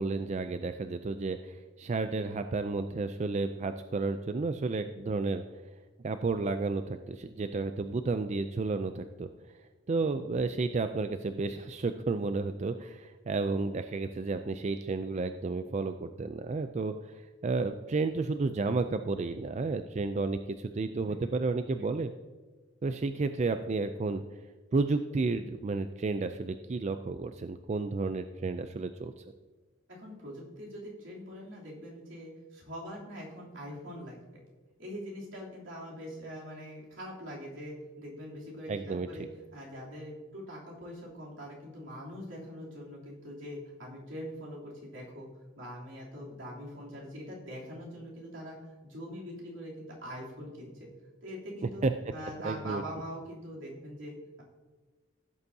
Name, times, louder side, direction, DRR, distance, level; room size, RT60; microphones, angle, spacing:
voice 1, 0.0-5.4 6.0-9.3 9.9-22.1 22.8-24.2 24.7-29.1 38.7-39.1 51.8-51.9 52.4-52.8, right 3 dB, 35° right, 9 dB, 0.4 m, -32 dB
voice 2, 29.9-34.2 34.8-39.2 39.5-45.3 45.6-50.9 51.2-51.8 52.1-54.4, equal, 80° right, -4 dB, 3.1 m, -43 dB
16.0 x 7.9 x 2.8 m, 1.3 s
head